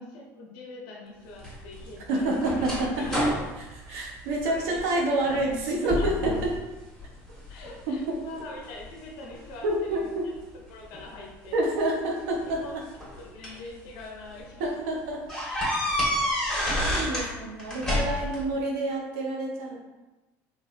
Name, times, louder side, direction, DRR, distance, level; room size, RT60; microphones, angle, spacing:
voice 1, 0.0-2.7 3.0-3.4 3.9-5.4 5.8-6.2 7.5-10.1 10.5-11.6 12.6-12.7 13.2-14.9 16.1-16.7 17.1-17.4 18.0-18.4, left 2 dB, 75° left, -1 dB, 0.8 m, -44 dB
sound 1, 1.4-4.8 5.2-5.6 5.9-6.6 7.0-7.7 8.3-9.8 10.9-11.0 12.3-13.7 14.2-14.3 14.6-14.7 15.3-17.3 17.6-18.4, left 1 dB, 5° left, 1.5 m, -29 dB
voice 2, 2.1-3.0 3.9-6.5 7.9-8.2 9.6-10.3 11.5-12.6 14.6-15.2 15.8-16.0 16.8-19.8, right 2 dB, 85° right, 0 dB, 0.8 m, -28 dB
3.3 x 3.0 x 2.4 m, 1.1 s
supercardioid pair, 100°, 7 cm